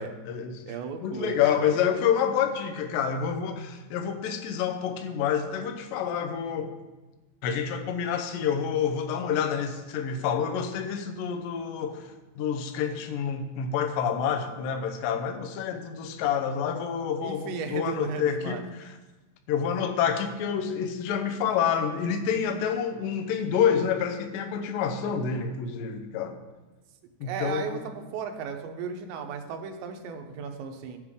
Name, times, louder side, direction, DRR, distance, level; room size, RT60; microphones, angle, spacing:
voice 1, 0.0-0.6 1.0-6.7 7.4-12.1 12.4-18.9 19.5-26.4 27.2-27.8, left 7 dB, 80° left, 5 dB, 2.1 m, -28 dB
voice 2, 0.7-1.8 17.2-18.6 27.2-31.0, right 6 dB, 85° right, 5 dB, 3.1 m, -35 dB
13.0 x 7.9 x 3.7 m, 1.2 s
omnidirectional pair, 5.0 m